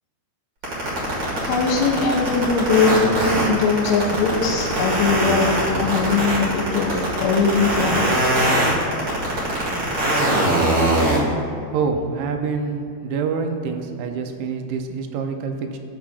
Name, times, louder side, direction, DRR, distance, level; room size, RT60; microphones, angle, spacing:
sound 1, 0.6-11.2, right 1 dB, 50° right, 1.2 m, -21 dB
voice 1, 1.4-5.5 5.8-8.1, left 4 dB, 85° left, -1 dB, 2.8 m, -21 dB
voice 2, 11.7-15.8, right 5 dB, 80° right, 5 dB, 2.9 m, -26 dB
13.0 x 7.4 x 2.5 m, 2.2 s
omnidirectional pair, 5.2 m